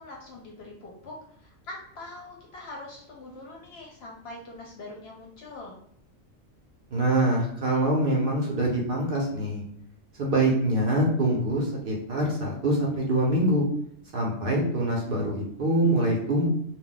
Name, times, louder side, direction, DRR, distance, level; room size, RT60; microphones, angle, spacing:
voice 1, 0.0-5.8, left 2 dB, 60° left, -2 dB, 0.7 m, -43 dB
voice 2, 6.9-9.6 10.2-13.6 14.1-16.5, right 1 dB, 55° right, -2 dB, 0.6 m, -24 dB
2.3 x 2.0 x 3.7 m, 0.68 s
omnidirectional pair, 1.4 m